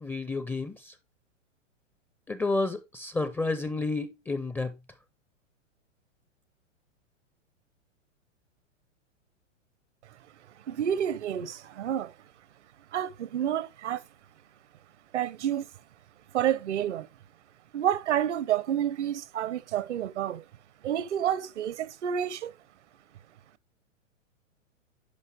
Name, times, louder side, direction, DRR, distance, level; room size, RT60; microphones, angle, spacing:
voice 1, 0.0-0.9 2.3-4.7, left 3 dB, 5° left, 0.5 m, -30 dB
voice 2, 10.7-12.1 12.9-14.0 15.1-15.7 16.3-17.1 17.7-20.4 20.8-22.5, right 10 dB, 65° right, 0.8 m, -29 dB
10.5 x 5.4 x 3.4 m
figure-of-eight pair, 110°, 38 cm